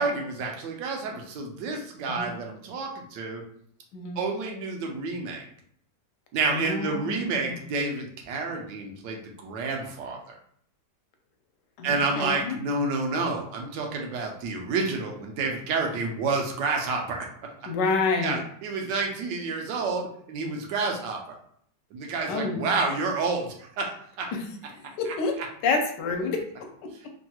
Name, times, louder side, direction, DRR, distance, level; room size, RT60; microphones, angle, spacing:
voice 1, 0.0-3.4 4.2-5.4 6.3-10.3 11.8-17.3 18.2-21.2 21.9-24.3, right 3 dB, 85° right, 1 dB, 1.3 m, -29 dB
voice 2, 3.9-4.2 6.5-7.6 11.8-12.6 17.7-18.4 22.3-22.8 24.3-24.5 24.7-27.1, left 4 dB, 80° left, 4 dB, 1.2 m, -29 dB
3.4 x 2.2 x 2.8 m, 0.64 s
omnidirectional pair, 1.9 m